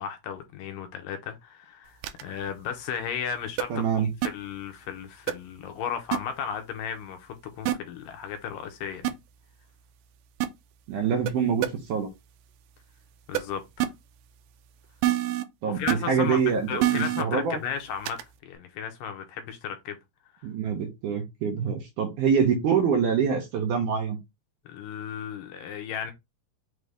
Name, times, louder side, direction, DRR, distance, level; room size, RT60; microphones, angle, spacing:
voice 1, 0.0-9.0 13.3-13.9 15.7-20.0 24.7-26.1, left 8 dB, 75° left, 2.2 m, -35 dB
sound 1, 2.0-2.2 3.6-3.7 4.2-4.3 5.3-5.4 6.1-6.2 7.7-7.8 9.0-9.1 10.4-10.5 11.3-11.4 11.6-11.7 13.3-13.4 13.8-13.9 15.0-15.4 15.9-16.0 16.8-17.2 18.1-18.2, right 14 dB, 90° right, 1.8 m, -24 dB
voice 2, 3.7-4.1 10.9-12.1 15.6-17.6 20.4-24.2, right 6 dB, 70° right, 2.0 m, -25 dB
6.2 x 2.6 x 3.4 m
omnidirectional pair, 4.3 m